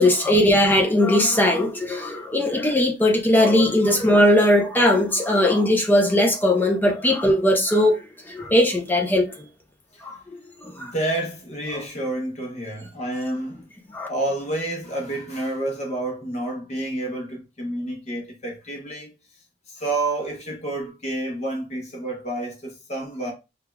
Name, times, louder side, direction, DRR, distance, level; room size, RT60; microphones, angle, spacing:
voice 1, 0.0-8.0 8.3-9.3 10.0-10.9 13.9-14.1, left 1 dB, 10° left, 0.5 m, -19 dB
voice 2, 10.6-13.7 14.1-19.1 19.7-23.3, right 1 dB, 40° left, 0.9 m, -29 dB
5.8 x 2.3 x 2.2 m
head